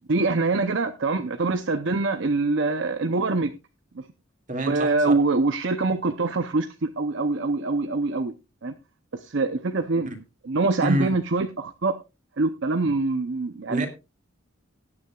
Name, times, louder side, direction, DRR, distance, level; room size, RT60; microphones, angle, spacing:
voice 1, 0.1-3.5 4.0-4.1 4.6-8.3 8.6-8.7 9.1-10.1 10.4-12.0 12.4-13.9, right 3 dB, 60° right, 0.7 m, -24 dB
voice 2, 4.5-5.2 10.0-10.2 10.8-11.2 13.7-13.9, equal, 40° right, 2.3 m, -27 dB
19.0 x 9.5 x 2.4 m
head